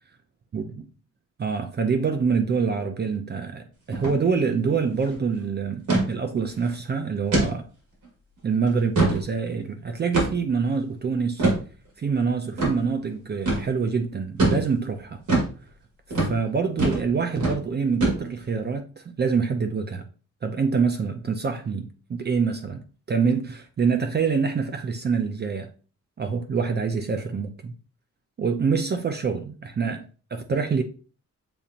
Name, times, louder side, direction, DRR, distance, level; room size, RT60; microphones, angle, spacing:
voice 1, 1.4-7.6 8.4-11.5 12.0-15.2 16.2-20.0 20.4-22.8 23.1-25.7 26.2-27.7 28.4-30.8, right 5 dB, 35° right, 0.4 m, -26 dB
sound 1, 3.9-4.2 4.5-4.6 4.9-5.2 5.9-6.1 6.6-6.7 7.3-7.5 8.0-8.1 8.7-9.2 10.1-10.5 11.4-11.6 12.6-12.7 13.5-13.7 14.4-14.6 15.3-15.5 16.1-16.3 16.8-17.1 17.4-17.6 18.0-18.5, right 2 dB, 85° right, 2.2 m, -22 dB
6.9 x 2.8 x 2.4 m
wide cardioid pair, 150°, 30 cm